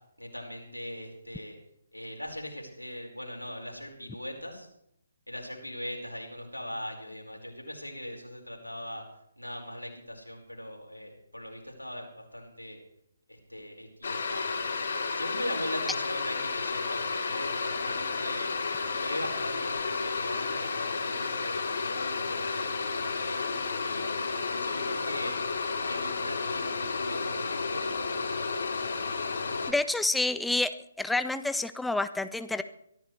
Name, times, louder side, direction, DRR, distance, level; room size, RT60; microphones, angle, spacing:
voice 1, 0.2-1.6 1.9-4.7 5.3-9.0 9.4-12.8 13.3-14.5 15.1-18.5 19.0-23.5 23.9-24.0 24.5-25.4 25.8-28.3, left 1 dB, 90° left, 1 dB, 5.0 m, -40 dB
sound 1, 14.0-29.7, left 4 dB, 55° left, 3.7 m, -32 dB
voice 2, 29.7-30.7 31.0-32.6, left 2 dB, 5° left, 11 dB, 0.5 m, -28 dB
23.5 x 14.5 x 3.3 m, 0.76 s
figure-of-eight pair, 140°, 0 cm